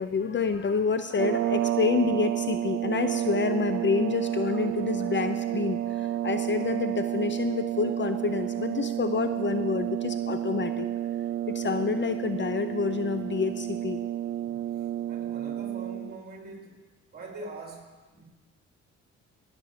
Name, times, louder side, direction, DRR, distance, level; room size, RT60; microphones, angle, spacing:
voice 1, 0.0-10.9 11.5-14.0, left 5 dB, 40° left, 9 dB, 0.7 m, -28 dB
sound 1, 1.1-16.2, right 12 dB, 50° right, 0.4 m, -30 dB
voice 2, 14.4-14.8 15.1-16.8 17.1-18.2, right 2 dB, 30° right, 1 dB, 3.3 m, -43 dB
17.5 x 7.5 x 5.0 m, 1.2 s
cardioid pair, 90°, 30 cm